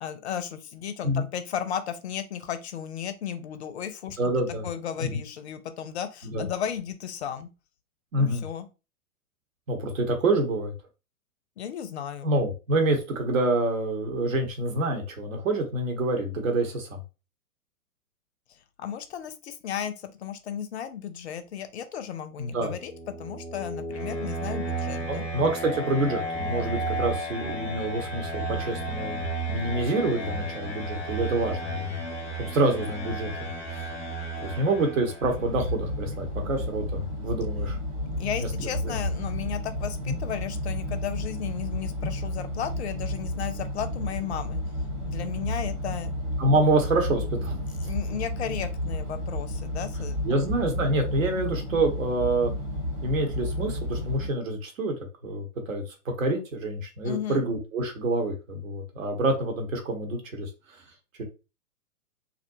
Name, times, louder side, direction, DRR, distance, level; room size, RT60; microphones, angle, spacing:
voice 1, 0.0-4.2 4.6-7.5 8.1-8.7 11.6-12.3 18.8-22.9 23.2-25.2 38.2-44.6 45.0-46.1 47.8-50.4 57.0-57.4, left 9 dB, 50° left, 10 dB, 0.5 m, -34 dB
voice 2, 4.2-4.7 5.0-5.2 6.2-6.5 8.1-8.4 9.7-10.7 12.2-17.0 22.4-22.7 25.1-32.0 32.4-33.5 34.4-37.8 38.2-39.0 40.1-40.2 42.0-42.1 46.4-47.6 50.2-52.5 53.0-54.9 55.2-60.5 61.2-61.3, right 2 dB, 60° right, 4 dB, 0.9 m, -27 dB
sound 1, 22.7-35.5, right 2 dB, 5° left, 0.7 m, -33 dB
sound 2, 35.2-54.3, left 1 dB, 25° right, 0.4 m, -32 dB
2.5 x 2.1 x 2.6 m, 0.30 s
figure-of-eight pair, 110°, 45 cm